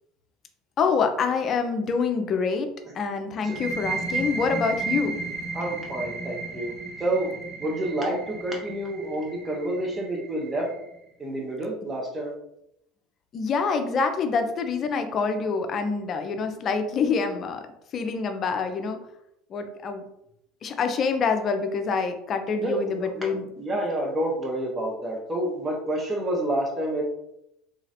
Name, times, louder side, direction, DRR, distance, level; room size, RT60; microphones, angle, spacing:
voice 1, 0.8-2.7 2.9-5.2 13.3-17.7 17.9-19.0 19.5-20.0 20.6-23.5, left 5 dB, 40° left, 6 dB, 0.4 m, -26 dB
sound 1, 3.4-10.9, right 4 dB, 65° right, 1.2 m, -34 dB
voice 2, 5.5-6.7 7.0-7.3 7.6-10.7 11.2-12.3 22.6-27.0, right 1 dB, 25° right, -2 dB, 0.6 m, -29 dB
2.9 x 2.4 x 2.7 m, 0.80 s
figure-of-eight pair, 70°, 0 cm